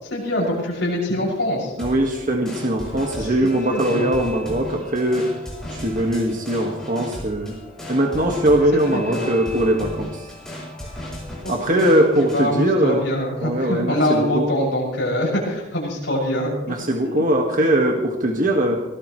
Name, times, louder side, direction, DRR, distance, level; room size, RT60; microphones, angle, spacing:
voice 1, 0.0-1.7 3.2-3.3 3.7-4.1 8.9-9.3 11.4-11.8 12.3-16.7, left 1 dB, 60° left, -3 dB, 6.7 m, -24 dB
sound 1, 1.8-12.4, left 1 dB, 5° left, 7.5 m, -35 dB
voice 2, 1.8-5.3 5.7-7.6 7.9-10.3 11.5-13.0 13.4-14.4 16.7-18.8, right 1 dB, 40° right, 1 dB, 1.7 m, -21 dB
22.5 x 18.5 x 3.2 m, 1.0 s
head